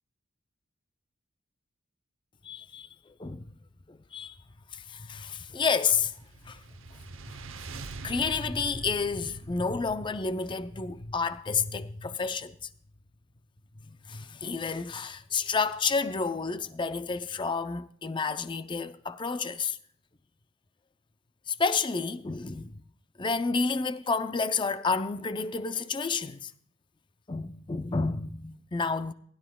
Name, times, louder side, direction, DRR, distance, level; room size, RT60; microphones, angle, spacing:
voice 1, 2.4-2.9 3.2-3.5 3.9-4.3 4.7-6.1 6.4-6.6 8.0-12.7 14.1-19.8 21.5-22.8 23.2-26.5 27.3-29.1, left 4 dB, 25° left, 0.5 m, -30 dB
sound 1, 6.0-11.4, right 3 dB, 70° right, 0.8 m, -44 dB
20.0 x 12.0 x 2.3 m
head